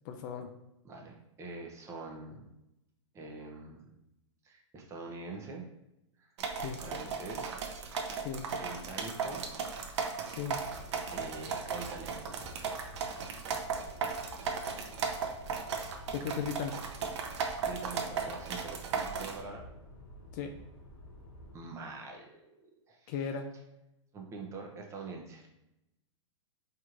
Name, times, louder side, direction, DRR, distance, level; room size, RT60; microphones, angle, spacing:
voice 1, 0.0-0.5 6.6-6.8 8.1-8.5 10.3-10.6 16.1-16.7 20.3-20.5 23.1-23.5, left 7 dB, 40° left, 6 dB, 0.4 m, -36 dB
voice 2, 0.8-2.5 3.1-3.9 4.4-5.7 6.2-6.3 6.8-7.6 8.6-9.4 11.1-12.3 17.6-19.6 21.5-23.1 24.1-25.5, right 3 dB, 20° right, 0 dB, 0.6 m, -44 dB
sound 1, 6.4-19.4, right 5 dB, 65° right, 0.7 m, -36 dB
sound 2, 10.4-21.6, equal, 70° left, 1.1 m, -51 dB
4.4 x 3.0 x 2.5 m, 0.89 s
hypercardioid pair, 135°, 16 cm